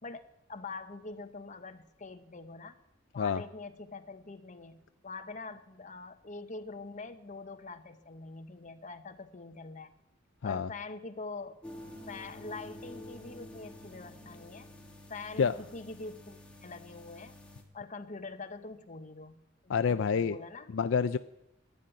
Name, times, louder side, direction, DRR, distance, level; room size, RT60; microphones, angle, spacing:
voice 1, 0.0-2.8 3.1-9.9 10.4-11.6 12.1-14.7 15.1-17.4 17.7-20.7, left 3 dB, 40° left, 7 dB, 1.0 m, -44 dB
sound 1, 11.6-17.6, left 1 dB, 5° left, 1.9 m, -49 dB
voice 2, 19.7-20.4 20.7-21.2, left 6 dB, 70° left, 11 dB, 0.4 m, -27 dB
11.5 x 10.5 x 9.4 m, 0.91 s
head